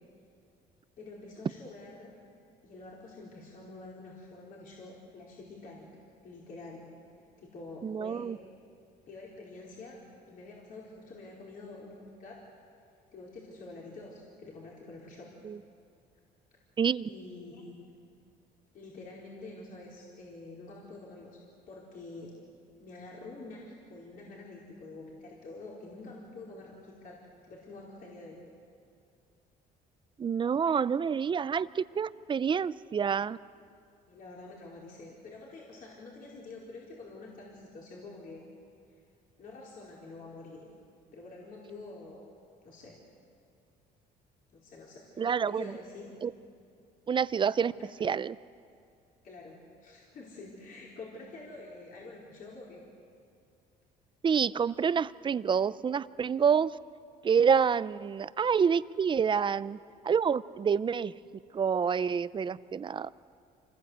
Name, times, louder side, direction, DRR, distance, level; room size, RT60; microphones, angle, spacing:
voice 1, 1.0-2.1 2.6-5.9 6.2-6.9 7.4-8.2 9.1-10.0 10.3-12.4 13.1-15.3 17.0-17.9 18.7-21.4 21.7-22.3 22.8-27.2 27.4-28.4 34.1-38.4 39.4-40.7 41.1-42.3 42.6-43.0 44.5-46.1 47.6-47.9 49.2-49.6 49.8-52.8, left 2 dB, 55° left, -4 dB, 4.6 m, -47 dB
voice 2, 7.8-8.4 15.4-15.6 16.8-17.1 30.2-33.4 45.2-45.7 46.2-46.3 47.1-47.7 48.0-48.4 54.2-56.7 57.2-59.8 60.0-61.1 61.5-63.1, right 6 dB, 30° right, 17 dB, 0.5 m, -27 dB
27.0 x 20.0 x 8.1 m, 2.4 s
cardioid pair, 110°, 17 cm